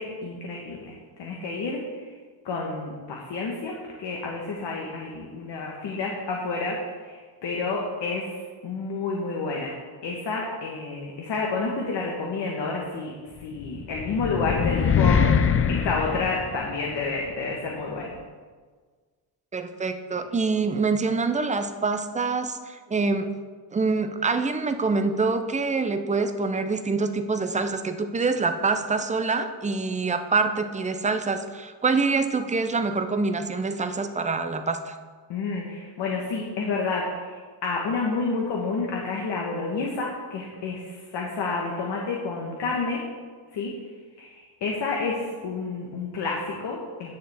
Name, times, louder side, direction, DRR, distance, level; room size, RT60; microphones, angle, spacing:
voice 1, 0.0-2.1 2.4-6.8 7.0-9.7 10.0-15.2 15.7-18.2 35.3-43.0 43.5-43.7 44.2-47.1, left 3 dB, 60° left, -1 dB, 1.4 m, -30 dB
sound 1, 13.6-17.0, left 7 dB, 30° left, 0.5 m, -23 dB
voice 2, 19.5-23.3 23.7-34.9, right 4 dB, 15° right, 8 dB, 0.6 m, -25 dB
10.0 x 6.6 x 3.5 m, 1.5 s
cardioid pair, 100°, 46 cm